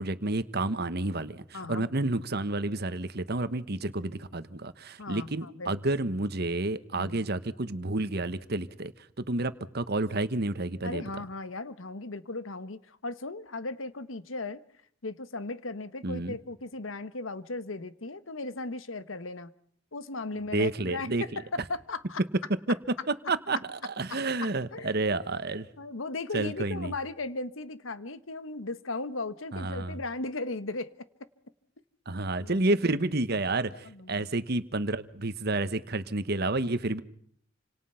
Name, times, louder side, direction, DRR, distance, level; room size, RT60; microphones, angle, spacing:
voice 1, 0.0-8.9 9.2-11.0 16.0-16.4 20.5-21.4 22.7-25.7 26.3-26.9 29.5-30.0 32.1-37.0, right 2 dB, 55° right, 1.3 m, -30 dB
voice 2, 1.5-1.9 5.0-5.7 6.9-7.2 10.8-14.6 15.0-19.5 19.9-22.2 24.1-24.2 24.7-24.9 25.8-30.9 32.4-32.6 33.8-34.3, left 3 dB, 90° left, 1.4 m, -37 dB
28.5 x 26.5 x 5.8 m
head